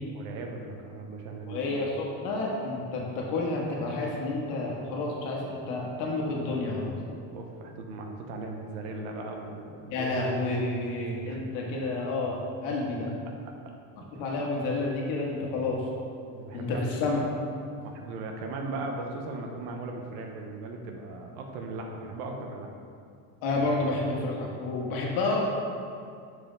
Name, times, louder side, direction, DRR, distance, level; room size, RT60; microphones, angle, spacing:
voice 1, 0.1-1.8 7.3-10.1 11.3-11.4 16.3-16.8 17.7-22.7, right 3 dB, 80° right, 2 dB, 1.0 m, -38 dB
voice 2, 1.5-6.9 9.9-13.1 14.2-15.8 16.5-17.2 23.4-25.4, left 2 dB, 75° left, -2 dB, 1.4 m, -30 dB
7.3 x 4.8 x 3.9 m, 2.3 s
cardioid pair, 165°, 38 cm